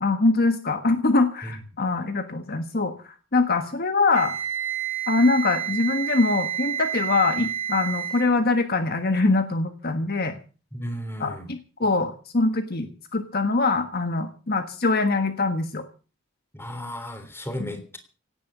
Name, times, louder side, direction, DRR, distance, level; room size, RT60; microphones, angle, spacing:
voice 1, 0.0-4.3 5.1-10.4 11.2-15.8 17.6-17.7, left 3 dB, 50° left, 8 dB, 1.5 m, -23 dB
Wind instrument woodwind instrument, 4.1-8.3, right 9 dB, 65° right, 2.8 m, -30 dB
voice 2, 10.7-11.5 16.5-18.0, equal, 10° left, 9 dB, 3.3 m, -34 dB
18.0 x 10.0 x 6.8 m, 0.38 s
head